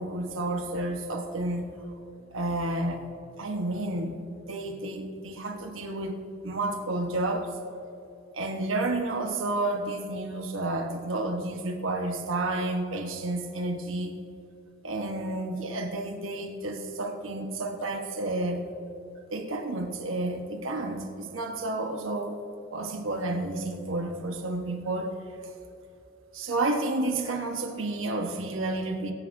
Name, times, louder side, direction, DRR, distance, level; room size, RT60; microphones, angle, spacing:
voice 1, 0.0-1.7 2.3-3.0 3.4-4.2 4.5-7.5 8.3-14.1 14.8-18.7 19.3-22.4 22.7-25.2 26.3-29.1, right 2 dB, 85° right, 3 dB, 1.1 m, -31 dB
23.5 x 9.7 x 2.6 m, 2.7 s
head